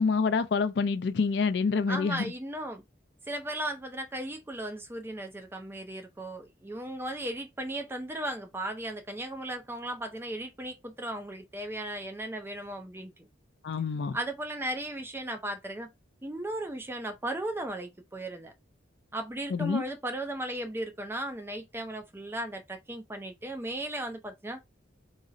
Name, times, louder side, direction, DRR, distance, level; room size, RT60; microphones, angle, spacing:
voice 1, 0.0-2.3 13.6-14.2 19.5-19.8, left 5 dB, 65° left, 0.4 m, -27 dB
voice 2, 1.9-2.8 3.3-13.1 14.1-15.9 16.2-18.5 19.1-24.6, right 1 dB, 10° right, 0.4 m, -36 dB
3.9 x 2.0 x 2.5 m
head